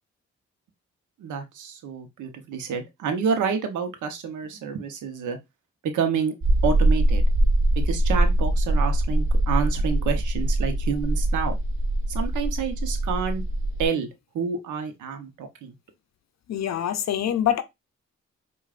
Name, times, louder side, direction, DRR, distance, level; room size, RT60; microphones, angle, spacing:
voice 1, 1.2-5.4 5.8-6.3 6.6-7.3 7.8-11.5 12.1-13.4 13.8-14.1 14.3-15.7, right 6 dB, 90° right, 0.8 m, -28 dB
sound 1, 6.4-13.9, right 1 dB, 45° right, 0.7 m, -22 dB
voice 2, 16.5-17.6, left 10 dB, 65° left, 0.5 m, -24 dB
4.8 x 2.4 x 2.4 m
cardioid pair, 60°, 30 cm